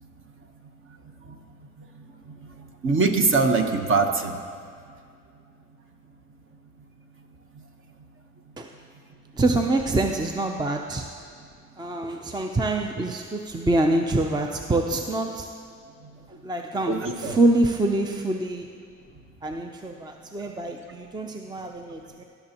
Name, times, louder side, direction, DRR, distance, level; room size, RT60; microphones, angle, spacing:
voice 1, 2.8-4.4 16.9-17.3, right 4 dB, 45° right, 5 dB, 1.1 m, -22 dB
voice 2, 9.3-11.1 11.8-15.5 16.4-18.7 19.4-22.2, right 2 dB, 15° right, 3 dB, 0.5 m, -25 dB
19.5 x 6.9 x 2.9 m, 2.2 s
cardioid pair, 90°, 30 cm